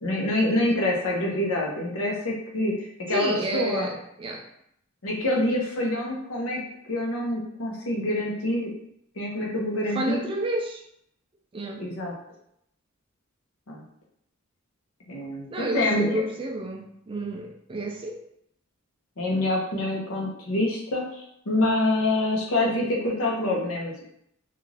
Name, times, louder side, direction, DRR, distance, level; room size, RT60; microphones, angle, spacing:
voice 1, 0.0-3.9 5.0-6.6 6.9-8.7 9.2-10.2 11.8-12.1 13.7-13.8 15.1-16.2 19.2-24.1, left 1 dB, 80° left, -2 dB, 0.8 m, -26 dB
voice 2, 3.1-4.5 9.9-10.8 11.5-11.8 15.5-18.2, right 1 dB, 25° right, 2 dB, 0.3 m, -30 dB
2.5 x 2.4 x 3.2 m, 0.74 s
head